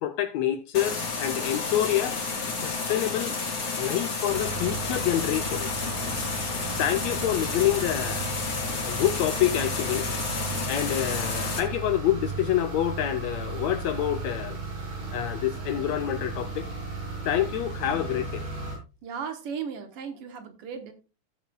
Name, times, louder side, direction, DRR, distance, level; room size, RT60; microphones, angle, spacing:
voice 1, 0.0-2.2 2.6-3.4 3.8-5.7 6.8-8.4 8.8-10.1 10.7-14.6 15.1-16.7 17.2-18.5, left 12 dB, 80° left, 1.6 m, -27 dB
sound 1, 0.7-11.6, left 4 dB, 35° left, 1.9 m, -31 dB
sound 2, 4.3-18.8, right 3 dB, 85° right, 7.8 m, -35 dB
voice 2, 19.0-20.9, right 6 dB, 60° right, 1.8 m, -36 dB
16.5 x 7.4 x 2.3 m
omnidirectional pair, 3.6 m